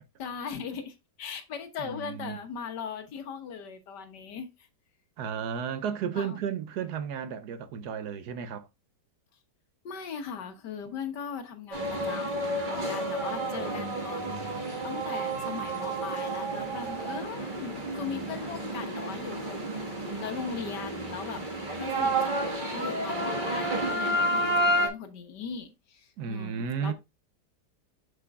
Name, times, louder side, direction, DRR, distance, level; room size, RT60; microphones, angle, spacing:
voice 1, 0.2-4.7 6.1-6.4 9.8-14.4 14.8-19.8 20.2-21.4 21.8-26.9, left 6 dB, 75° left, 1.7 m, -39 dB
voice 2, 1.8-2.4 5.2-8.7 26.2-26.9, right 7 dB, 70° right, 1.2 m, -33 dB
sound 1, 11.7-24.9, right 1 dB, 30° right, 1.5 m, -30 dB
7.6 x 6.8 x 2.3 m
omnidirectional pair, 1.9 m